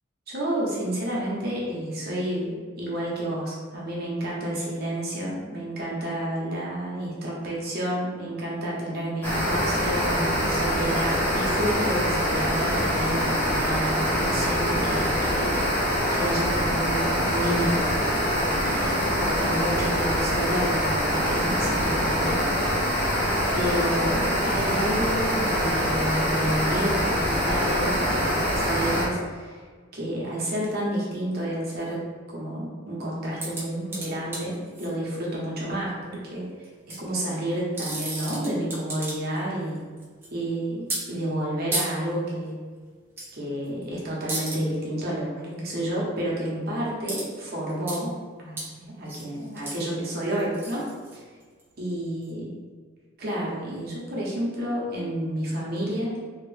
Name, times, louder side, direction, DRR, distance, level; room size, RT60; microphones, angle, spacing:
voice 1, 0.3-17.9 18.2-18.3 18.6-22.4 23.5-29.6 29.9-39.8 40.3-42.5 43.3-48.1 48.4-50.8 51.1-51.2 51.8-52.5 53.2-56.2, right 1 dB, 50° right, -5 dB, 0.9 m, -30 dB
sound 1, 9.2-29.0, equal, 10° left, 1.0 m, -24 dB
sound 2, 33.4-34.9 36.6-37.0 37.6-39.4 39.7-40.3 40.9-41.0 41.7-41.9 43.2-43.3 43.6-43.8 44.3-44.6 47.0-47.3 47.5-48.0 48.6-48.7 49.0-51.6 52.2-52.3, right 2 dB, 10° right, 0.7 m, -33 dB
3.0 x 2.9 x 3.2 m, 1.5 s
head